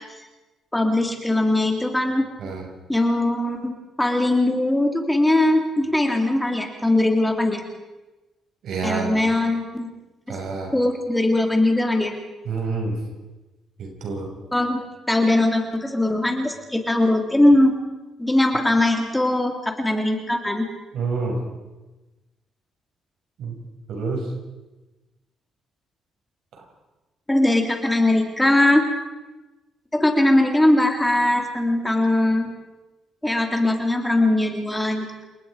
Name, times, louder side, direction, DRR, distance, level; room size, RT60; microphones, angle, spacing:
voice 1, 0.7-2.3 2.9-7.6 8.8-9.9 10.7-12.1 14.5-17.7 18.2-20.7 27.3-28.9 29.9-32.5 33.2-35.2, left 1 dB, 10° left, 3 dB, 3.5 m, -20 dB
voice 2, 8.6-9.2 10.3-10.7 12.5-13.0 13.8-14.3 20.9-21.4 23.4-23.6 23.9-24.3, right 4 dB, 70° right, 1 dB, 6.9 m, -27 dB
30.0 x 19.0 x 5.2 m, 1.1 s
cardioid pair, 90°, 0 cm